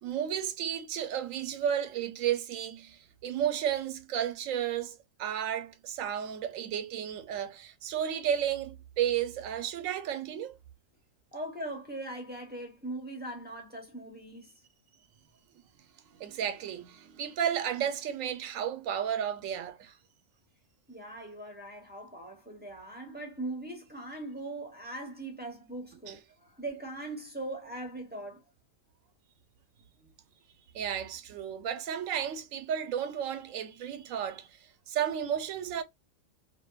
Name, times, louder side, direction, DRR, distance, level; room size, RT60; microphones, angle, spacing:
voice 1, 0.0-10.6 16.1-19.9 26.1-26.2 30.7-34.6 34.9-35.8, right 9 dB, 80° right, 1.0 m, -33 dB
voice 2, 11.3-14.6 20.9-28.4, right 2 dB, 10° right, 0.7 m, -40 dB
2.6 x 2.5 x 2.2 m
omnidirectional pair, 1.4 m